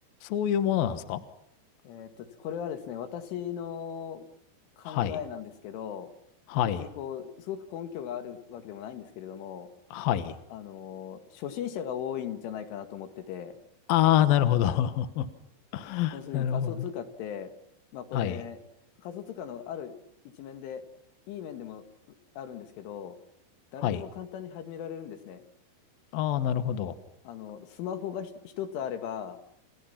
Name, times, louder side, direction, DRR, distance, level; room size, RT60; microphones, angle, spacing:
voice 1, 0.2-1.2 4.8-5.2 6.5-6.8 9.9-10.3 13.9-15.3 15.7-16.9 18.1-18.4 23.8-24.0 26.1-26.9, left 11 dB, 65° left, 11 dB, 2.6 m, -26 dB
voice 2, 1.8-4.3 4.8-6.1 6.8-9.7 10.5-13.6 16.1-17.5 17.9-18.6 19.0-19.9 20.4-20.8 21.3-21.9 22.4-23.2 23.7-25.4 27.3-29.4, left 9 dB, 90° left, 8 dB, 4.5 m, -38 dB
29.0 x 29.0 x 5.9 m, 0.76 s
omnidirectional pair, 5.4 m